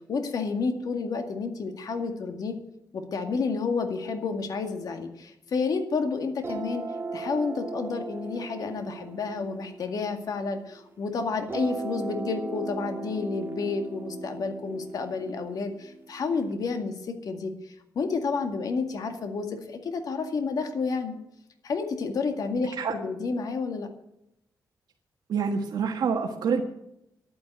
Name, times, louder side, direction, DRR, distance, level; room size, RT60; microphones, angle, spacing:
voice 1, 0.1-2.5 2.9-6.8 7.1-21.2 21.6-23.9, left 4 dB, 60° left, 5 dB, 2.0 m, -30 dB
sound 1, 6.4-10.8 11.5-16.4, right 4 dB, 30° right, 2.1 m, -38 dB
voice 2, 25.3-26.6, right 6 dB, 75° right, 3 dB, 1.5 m, -26 dB
11.5 x 9.7 x 8.9 m, 0.81 s
wide cardioid pair, 140°, 7 cm